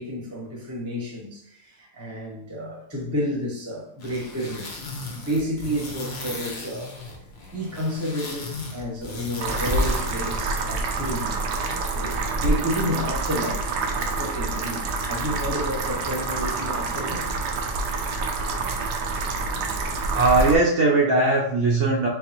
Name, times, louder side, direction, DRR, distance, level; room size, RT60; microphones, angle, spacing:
voice 1, 0.0-4.7 5.1-7.0 7.5-11.3 11.9-17.3, equal, 10° right, 0.9 m, -30 dB
sound 1, 4.0-11.3, left 3 dB, 50° left, 0.8 m, -37 dB
sound 2, 9.4-20.6, right 3 dB, 80° right, 1.2 m, -27 dB
voice 2, 20.1-22.1, right 2 dB, 60° right, 1.0 m, -19 dB
3.9 x 3.5 x 2.9 m
omnidirectional pair, 1.8 m